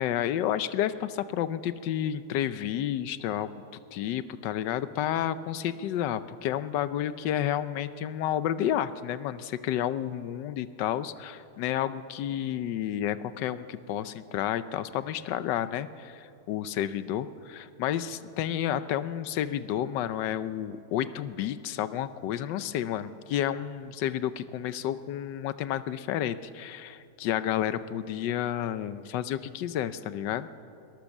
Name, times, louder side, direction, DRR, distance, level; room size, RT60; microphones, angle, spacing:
voice 1, 0.0-3.5 3.9-30.5, left 11 dB, 80° left, 13 dB, 1.4 m, -31 dB
22.0 x 20.0 x 7.2 m, 2.5 s
omnidirectional pair, 1.9 m